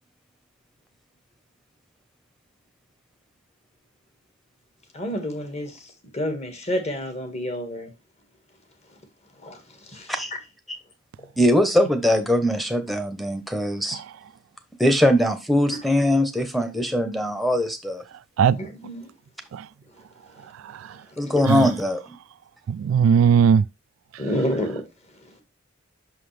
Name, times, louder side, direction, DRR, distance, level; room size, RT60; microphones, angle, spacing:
voice 1, 4.9-7.9 9.4-10.1 18.5-19.1 21.1-21.4 24.2-24.8 25.2-25.4, left 1 dB, 35° left, 1.6 m, -30 dB
voice 2, 11.4-14.0 14.8-18.0 21.2-22.0, equal, ahead, 0.9 m, -21 dB
voice 3, 22.7-23.6, right 7 dB, 85° right, 0.3 m, -18 dB
5.9 x 5.6 x 3.3 m
head